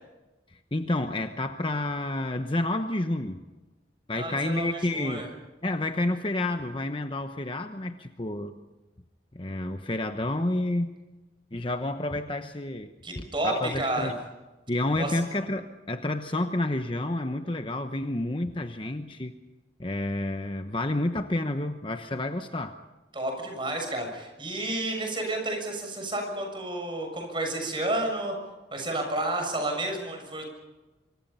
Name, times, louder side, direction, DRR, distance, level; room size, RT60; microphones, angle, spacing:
voice 1, 0.5-3.4 4.1-5.3 5.6-8.5 9.3-10.9 11.5-14.2 14.7-19.3 19.8-22.7, left 1 dB, 25° left, 7 dB, 1.0 m, -30 dB
voice 2, 4.1-5.3 13.0-14.1 15.0-15.2 23.1-28.3 28.7-30.4, right 1 dB, 25° right, 3 dB, 6.8 m, -31 dB
25.5 x 24.5 x 5.6 m, 1.1 s
head